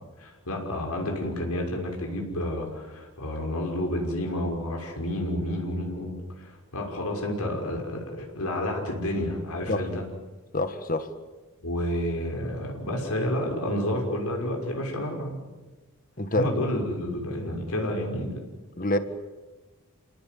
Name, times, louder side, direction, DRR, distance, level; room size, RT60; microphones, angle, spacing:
voice 1, 0.2-10.0 11.6-15.4 16.3-18.5, left 1 dB, 85° left, 0 dB, 6.1 m, -30 dB
voice 2, 10.5-11.1 16.2-16.5 18.8-19.0, left 1 dB, 40° left, 10 dB, 1.8 m, -26 dB
30.0 x 18.5 x 9.6 m, 1.2 s
head